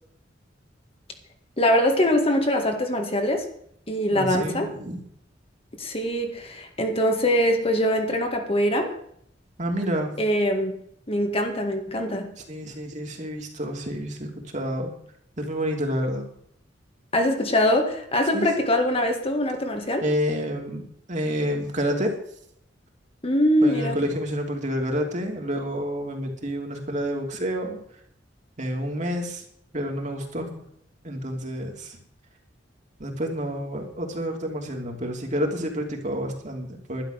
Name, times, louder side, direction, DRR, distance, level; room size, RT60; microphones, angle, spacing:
voice 1, 1.6-3.5 3.9-4.7 5.8-8.9 10.2-10.8 11.1-12.3 17.1-20.1 23.2-24.0, left 1 dB, 30° left, 4 dB, 1.9 m, -23 dB
voice 2, 4.1-5.0 9.6-10.2 12.5-14.9 15.4-16.2 18.3-18.5 20.0-22.1 23.6-27.8 28.6-29.4 29.7-30.6 31.0-32.0 33.0-37.0, equal, 40° right, 2 dB, 2.9 m, -29 dB
12.0 x 11.0 x 6.5 m, 0.68 s
head